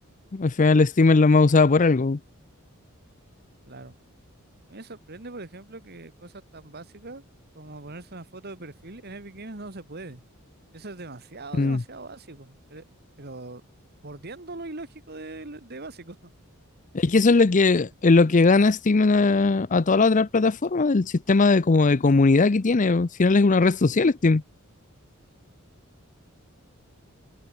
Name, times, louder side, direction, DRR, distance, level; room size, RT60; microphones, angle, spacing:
voice 1, 0.3-2.2 11.6-11.8 16.9-24.4, left 3 dB, 35° left, 0.6 m, -19 dB
voice 2, 4.7-7.2 7.6-10.2 10.7-12.8 13.2-13.6 14.0-16.3, right 2 dB, 50° right, 2.1 m, -41 dB
head